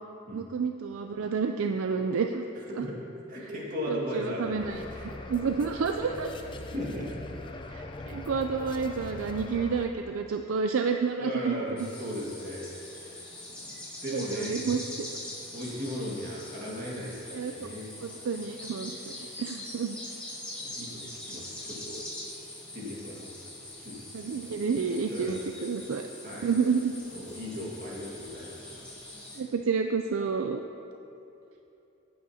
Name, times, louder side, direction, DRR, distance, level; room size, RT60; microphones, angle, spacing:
voice 1, 0.3-2.4 2.8-2.9 3.9-4.8 5.3-6.3 7.7-11.9 14.1-15.1 17.3-17.7 18.0-20.0 24.1-26.1 26.4-27.0 29.4-30.6, right 5 dB, 75° right, 5 dB, 0.4 m, -30 dB
voice 2, 3.3-5.2 6.7-7.1 11.2-12.7 13.0-13.2 13.5-13.7 14.0-14.8 15.5-17.9 20.6-22.0 22.7-23.3 23.8-24.5 25.0-25.4 26.2-26.5 27.1-28.8, equal, 40° right, -4 dB, 1.9 m, -37 dB
sound 1, 4.6-9.9, left 2 dB, 25° left, 0.5 m, -41 dB
sound 2, 11.8-29.4, left 1 dB, 5° left, 2.3 m, -43 dB
17.0 x 8.7 x 2.8 m, 2.9 s
head